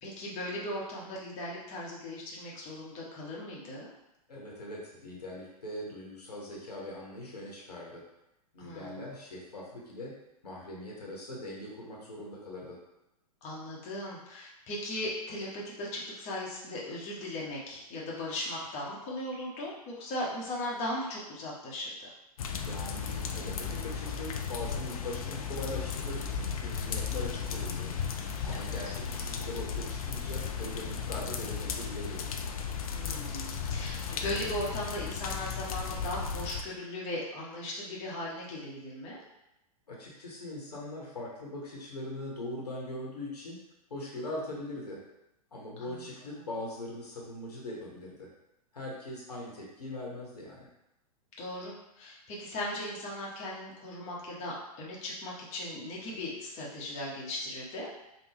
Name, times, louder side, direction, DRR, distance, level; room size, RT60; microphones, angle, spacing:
voice 1, 0.0-3.9 8.6-9.1 13.4-22.1 28.5-28.8 32.9-39.2 45.8-46.0 51.4-57.9, left 1 dB, 35° left, -4 dB, 0.9 m, -38 dB
voice 2, 4.3-8.0 8.5-10.1 10.4-12.8 22.6-27.9 28.4-32.2 39.9-43.6 43.9-45.0 45.5-48.3 48.7-50.7, left 1 dB, 80° left, -4 dB, 1.1 m, -41 dB
sound 1, 22.4-36.6, left 6 dB, 65° left, 0.4 m, -35 dB
3.4 x 2.2 x 3.3 m, 0.88 s
figure-of-eight pair, 105°, 20 cm